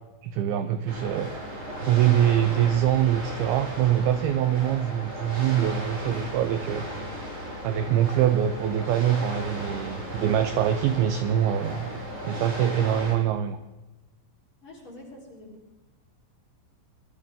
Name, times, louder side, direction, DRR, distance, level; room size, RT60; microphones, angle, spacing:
voice 1, 0.2-1.3 1.8-6.9 7.6-11.9 12.2-13.6, right 10 dB, 80° right, 10 dB, 2.2 m, -24 dB
sound 1, 0.9-13.1, equal, 30° right, 5.7 m, -36 dB
voice 2, 14.6-15.8, left 1 dB, 30° left, -5 dB, 4.5 m, -46 dB
21.5 x 12.5 x 3.7 m, 1.1 s
omnidirectional pair, 5.0 m